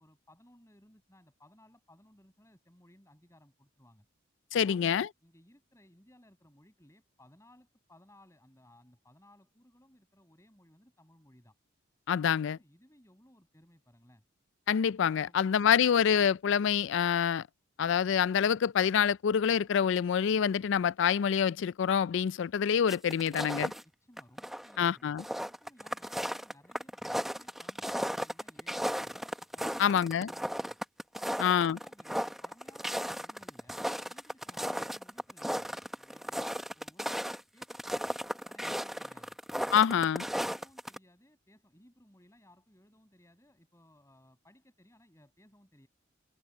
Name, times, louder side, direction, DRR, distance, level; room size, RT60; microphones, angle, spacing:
voice 1, 0.0-4.1 4.5-4.9 5.2-11.5 12.4-14.2 24.0-30.8 31.1-38.2 38.5-39.4 39.7-45.9, left 1 dB, 15° left, 7.7 m, -61 dB
voice 2, 4.5-5.1 12.1-12.6 14.7-17.4 17.8-23.7 24.8-25.2 29.8-30.3 31.4-31.8 39.7-40.2, left 8 dB, 65° left, 0.3 m, -26 dB
sound 1, 22.9-23.8 24.2-24.8 25.1-41.0, equal, ahead, 0.9 m, -35 dB
head